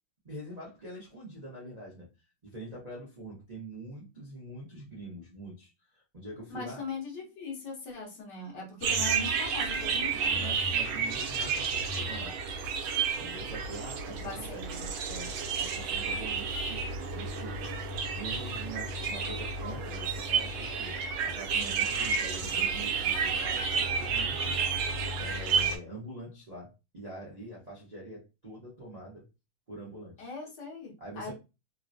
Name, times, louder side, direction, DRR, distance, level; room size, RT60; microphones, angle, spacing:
voice 1, 0.2-2.1 2.4-6.8 10.1-12.4 13.2-14.6 15.1-24.7 25.2-29.3 29.7-30.3 31.0-31.3, right 1 dB, 60° right, -6 dB, 0.4 m, -44 dB
voice 2, 6.5-10.4 14.2-14.9 30.2-31.3, left 3 dB, 60° left, -1 dB, 1.4 m, -40 dB
sound 1, 8.8-25.8, right 5 dB, 75° right, 1.4 m, -31 dB
3.8 x 2.1 x 2.6 m, 0.28 s
omnidirectional pair, 2.4 m